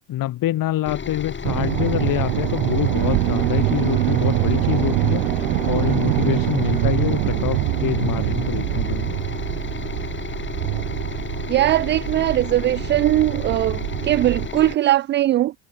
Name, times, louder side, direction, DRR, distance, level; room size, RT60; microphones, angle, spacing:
voice 1, 0.1-9.2, left 14 dB, 40° left, 2.7 m, -26 dB
sound 1, 0.9-14.8, left 6 dB, 25° left, 6.8 m, -32 dB
sound 2, 1.4-14.5, right 24 dB, 55° right, 1.9 m, -24 dB
Alarm, 2.9-10.0, right 10 dB, 90° right, 7.3 m, -31 dB
voice 2, 11.5-15.5, right 14 dB, 25° right, 0.4 m, -20 dB
hypercardioid pair, 90°, 49 cm